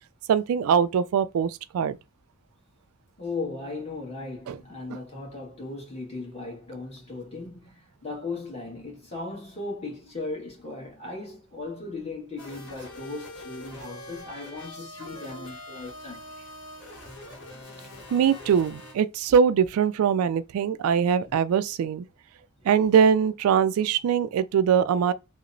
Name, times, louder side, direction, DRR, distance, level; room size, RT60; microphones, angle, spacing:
voice 1, 0.3-2.0 4.5-4.6 18.1-22.0 22.7-25.1, right 7 dB, 90° right, 0.3 m, -22 dB
voice 2, 3.2-16.2 21.2-21.3, left 3 dB, 30° left, 1.2 m, -37 dB
sound 1, 12.4-18.9, left 1 dB, 60° left, 1.1 m, -43 dB
2.9 x 2.0 x 2.5 m
head